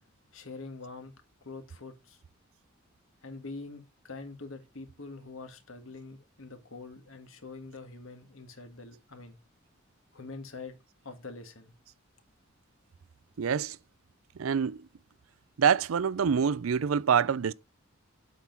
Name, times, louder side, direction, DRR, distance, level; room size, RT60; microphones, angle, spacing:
voice 1, 0.3-1.1 1.4-2.2 3.2-9.4 10.1-10.8 11.0-11.7, left 3 dB, 75° left, 1.9 m, -44 dB
voice 2, 13.4-13.8 14.4-14.8 15.6-17.5, right 7 dB, 80° right, 0.5 m, -26 dB
8.2 x 5.9 x 5.9 m
head